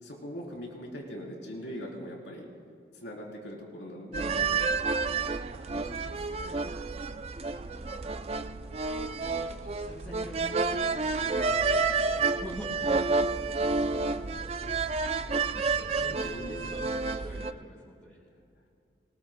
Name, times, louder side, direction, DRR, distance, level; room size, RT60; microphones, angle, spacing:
voice 1, 0.0-2.5 2.9-4.7 5.1-6.6 11.8-12.2 13.1-13.3 16.1-16.7, equal, 90° left, -2 dB, 3.5 m, -42 dB
sound 1, 4.1-17.5, right 4 dB, 35° right, 0.4 m, -30 dB
voice 2, 7.6-15.1 15.4-18.2, equal, ahead, -12 dB, 4.5 m, -46 dB
24.5 x 19.5 x 2.2 m, 2.5 s
head